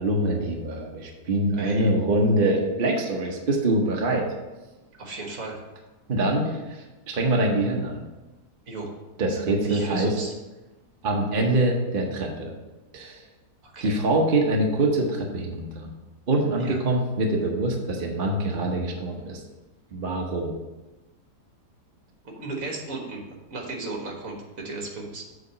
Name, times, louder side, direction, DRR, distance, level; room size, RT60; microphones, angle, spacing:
voice 1, 0.0-4.3 6.1-8.0 9.2-10.1 11.0-12.5 12.9-13.2 13.8-15.9 16.3-19.4 19.9-20.5, right 1 dB, 40° right, 0 dB, 0.9 m, -24 dB
voice 2, 1.6-1.9 5.0-5.6 8.7-8.9 9.6-10.3 13.6-14.0 16.6-16.8 22.3-23.2 23.5-25.2, right 3 dB, 55° right, 0 dB, 1.7 m, -35 dB
7.7 x 3.5 x 6.5 m, 1.1 s
omnidirectional pair, 1.7 m